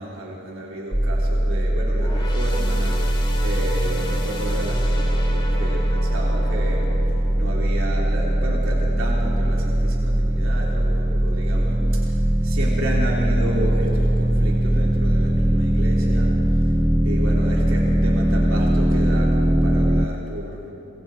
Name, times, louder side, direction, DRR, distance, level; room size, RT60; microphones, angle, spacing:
voice 1, 0.0-6.9 7.3-12.1 12.4-16.3 17.0-20.7, right 1 dB, 65° right, -3 dB, 3.5 m, -32 dB
sound 1, 0.9-20.1, right 1 dB, 10° right, 0.5 m, -20 dB
sound 2, 1.9-9.6 10.0-10.2 11.1-11.2, left 2 dB, 20° left, 2.1 m, -36 dB
26.0 x 23.0 x 4.4 m, 2.9 s
head